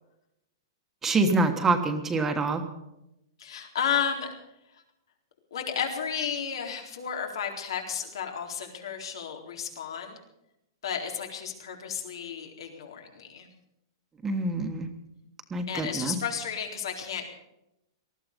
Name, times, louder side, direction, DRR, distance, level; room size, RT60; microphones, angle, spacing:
voice 1, 1.0-2.6 14.2-14.9 15.5-16.2, right 3 dB, 10° right, 6 dB, 1.4 m, -26 dB
voice 2, 3.4-4.3 4.7-4.8 5.5-10.2 10.8-13.5 15.7-17.3, left 7 dB, 80° left, 3 dB, 4.0 m, -32 dB
19.0 x 13.5 x 5.3 m, 0.86 s
hypercardioid pair, 165°, 2 cm